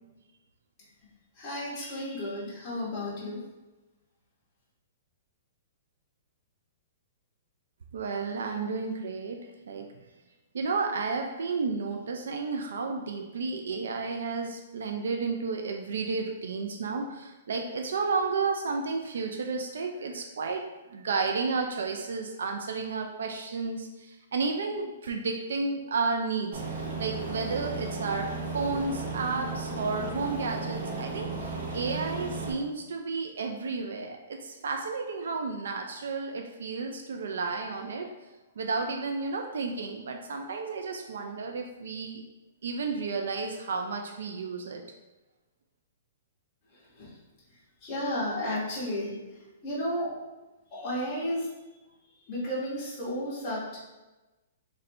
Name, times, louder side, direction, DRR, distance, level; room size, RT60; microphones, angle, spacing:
voice 1, 1.3-3.4 46.7-47.2 47.5-50.2 50.7-51.5 52.2-53.8, left 1 dB, 20° left, -9 dB, 1.0 m, -33 dB
voice 2, 7.9-9.9 10.5-38.1 38.6-42.2 42.6-44.8, right 4 dB, 80° right, 3 dB, 0.4 m, -32 dB
Aircraft, 26.5-32.5, right 3 dB, 50° right, 1.0 m, -35 dB
3.2 x 2.6 x 4.2 m, 1.1 s
hypercardioid pair, 175°, 0 cm